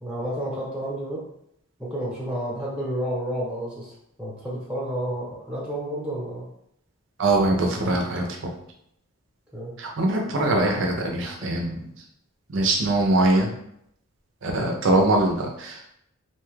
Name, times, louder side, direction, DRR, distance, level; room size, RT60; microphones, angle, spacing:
voice 1, 0.0-1.2 1.8-6.5 9.5-9.7, right 1 dB, 5° right, -7 dB, 0.8 m, -30 dB
voice 2, 7.2-8.5 9.8-11.9 12.5-13.5 14.4-16.0, right 2 dB, 60° right, 1 dB, 0.5 m, -22 dB
2.6 x 2.3 x 3.1 m, 0.75 s
head